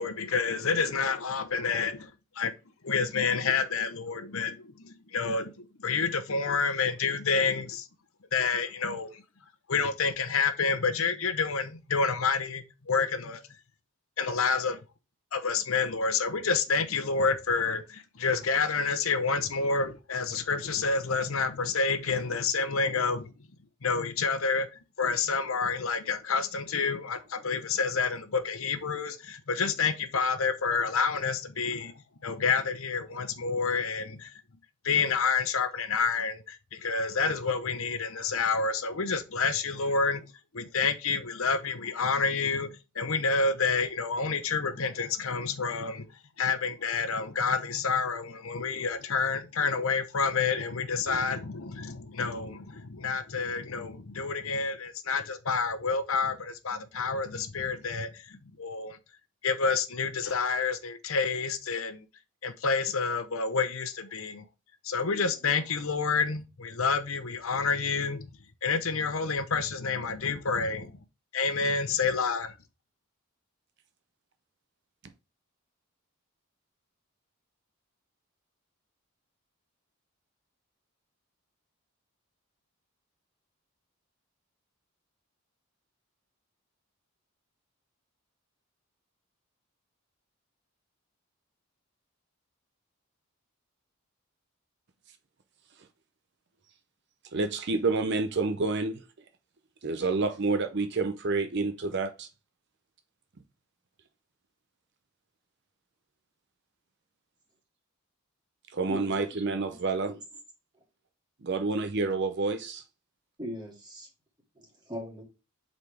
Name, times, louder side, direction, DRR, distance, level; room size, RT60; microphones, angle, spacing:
voice 1, 0.0-2.1 2.4-2.5 2.8-7.9 8.3-9.2 9.7-13.4 14.2-14.8 15.3-23.3 23.8-24.7 25.0-31.9 32.2-34.3 34.8-40.3 40.5-46.1 46.4-59.0 59.4-62.0 62.4-64.4 64.8-68.3 68.6-70.9 71.3-72.5, left 5 dB, 70° left, 0.9 m, -29 dB
voice 2, 97.3-99.0 99.8-102.3 108.7-110.1 111.4-112.8, right 3 dB, 50° right, 0.6 m, -28 dB
voice 3, 113.4-114.1 114.5-115.2, equal, 20° right, 2.3 m, -39 dB
7.7 x 4.2 x 3.4 m
head